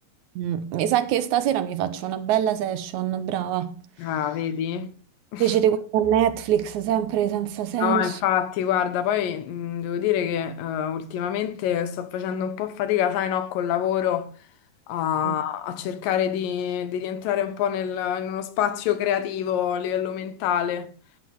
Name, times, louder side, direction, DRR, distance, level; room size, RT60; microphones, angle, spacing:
voice 1, 0.4-3.7 5.4-8.2 15.2-15.4, right 10 dB, 70° right, 2.1 m, -24 dB
voice 2, 4.0-4.9 5.3-5.6 7.8-14.3 14.9-20.9, left 10 dB, 90° left, 2.6 m, -26 dB
sound 1, 6.0-8.6, left 4 dB, 55° left, 4.3 m, -50 dB
11.5 x 8.3 x 4.6 m
omnidirectional pair, 3.9 m